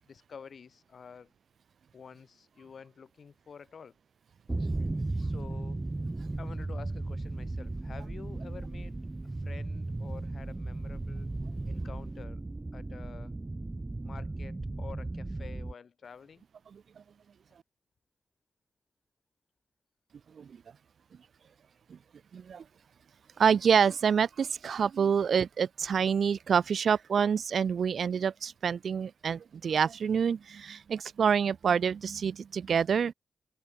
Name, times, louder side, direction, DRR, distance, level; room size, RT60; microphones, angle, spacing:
voice 1, 0.1-1.3 1.9-3.9 5.2-5.8 6.4-9.0 9.3-11.3 11.7-12.4 12.7-13.3 14.0-16.5, left 6 dB, 70° left, 5.1 m, -49 dB
sound 1, 4.5-15.7, right 2 dB, 30° right, 2.7 m, -36 dB
voice 2, 22.3-22.6 23.4-33.1, right 7 dB, 75° right, 0.7 m, -27 dB
cardioid pair, 45°, 0 cm